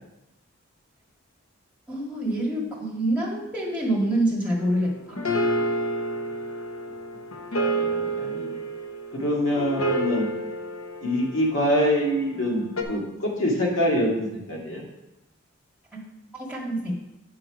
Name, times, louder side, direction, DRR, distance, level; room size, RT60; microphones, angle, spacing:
voice 1, 1.9-5.2 16.5-17.0, right 1 dB, 5° right, -4 dB, 1.8 m, -26 dB
sound 1, 4.6-12.0 12.8-12.9, right 1 dB, 80° left, 0.9 m, -29 dB
voice 2, 7.7-8.6 9.1-10.3 11.0-14.8, equal, 60° left, -2 dB, 2.2 m, -25 dB
7.9 x 5.7 x 4.8 m, 0.93 s
head